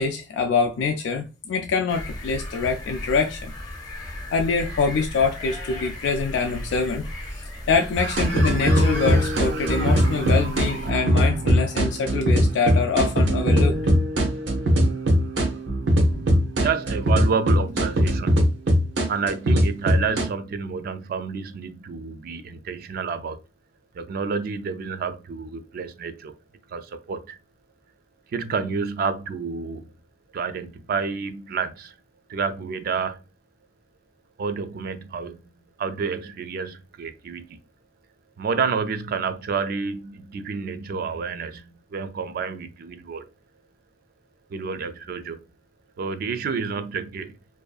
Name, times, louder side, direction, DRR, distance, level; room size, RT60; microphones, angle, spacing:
voice 1, 0.0-3.5 4.3-7.0 7.7-13.8, left 5 dB, 85° left, 0.3 m, -24 dB
sound 1, 1.9-10.9, left 1 dB, 20° left, 0.7 m, -36 dB
sound 2, 8.0-20.2, equal, 80° right, 0.7 m, -20 dB
voice 2, 16.6-18.5 19.1-23.4 23.9-26.3 26.7-27.4 28.3-29.9 30.3-31.9 32.3-33.2 34.4-35.4 35.8-37.6 38.4-43.2 44.5-45.4 46.0-47.3, right 5 dB, 55° right, 0.3 m, -29 dB
2.5 x 2.3 x 2.3 m
head